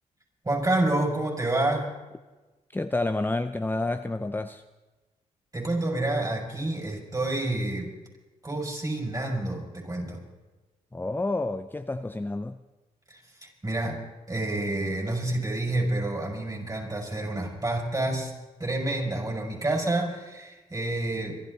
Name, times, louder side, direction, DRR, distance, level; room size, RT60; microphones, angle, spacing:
voice 1, 0.4-1.9 5.5-7.9 8.4-10.2 13.1-14.0 14.3-18.3 18.6-21.4, right 2 dB, 25° right, 0 dB, 6.3 m, -28 dB
voice 2, 2.7-4.6 10.9-12.6, left 2 dB, 15° left, 9 dB, 0.6 m, -29 dB
25.5 x 12.0 x 4.1 m, 1.2 s
cardioid pair, 60°, 15 cm